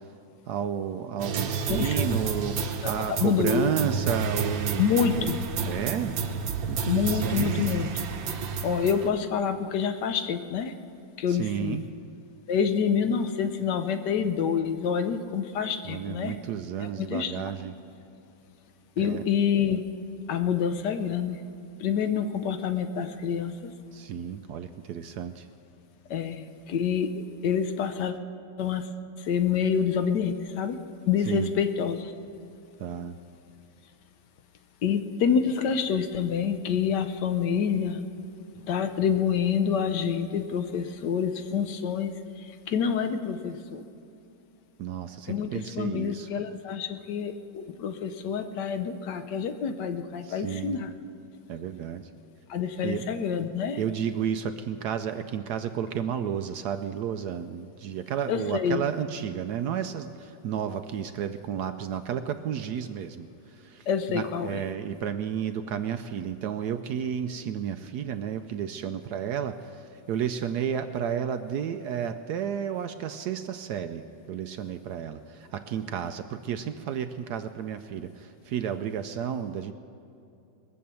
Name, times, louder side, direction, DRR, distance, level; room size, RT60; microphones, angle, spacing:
voice 1, 0.5-4.8 5.2-5.3 5.7-6.1 6.7-7.6 11.3-11.9 15.8-17.7 19.0-19.2 23.9-25.5 31.3-31.5 32.8-33.2 44.8-46.3 50.2-50.8 51.5-52.1 52.8-53.1 53.8-63.3 63.5-74.0 74.3-79.7, right 8 dB, 70° right, 9 dB, 1.0 m, -32 dB
sound 1, 1.2-9.1, right 5 dB, 90° right, 1.7 m, -30 dB
voice 2, 1.7-2.2 2.8-2.9 3.2-3.7 4.8-5.4 6.8-8.1 8.6-10.7 11.2-11.9 12.5-16.4 17.0-17.3 19.0-19.8 20.3-21.4 21.8-23.7 26.1-28.1 28.6-28.9 29.2-30.8 31.1-32.1 34.8-38.0 38.7-43.8 45.3-45.5 45.7-50.9 52.5-53.8 58.3-58.8 63.9-64.6, left 7 dB, 70° left, 8 dB, 1.3 m, -27 dB
21.5 x 7.5 x 6.9 m, 2.6 s
omnidirectional pair, 2.0 m